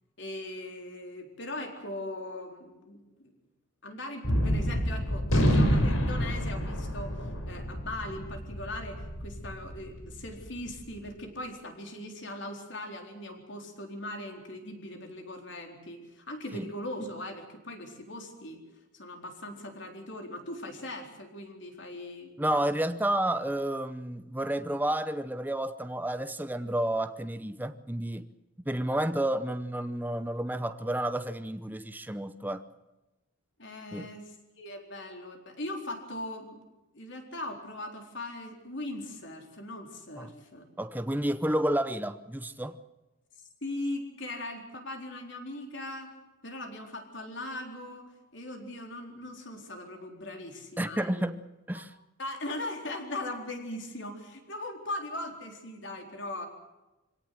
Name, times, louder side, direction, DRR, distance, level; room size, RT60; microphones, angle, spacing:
voice 1, 0.2-3.3 3.8-18.6 18.9-22.3 33.6-36.6 36.9-40.6 43.6-46.1 46.4-51.3 51.7-51.8 52.2-56.5, left 1 dB, 55° left, 4.1 m, -40 dB
Gunshot gunfire, 4.2-10.8, equal, 80° left, 5.0 m, -28 dB
voice 2, 22.4-28.3 28.7-32.6 33.9-34.1 40.2-40.3 40.8-42.8 50.8-51.4 51.7-51.9, right 1 dB, 10° right, 0.7 m, -30 dB
25.5 x 17.5 x 7.7 m
head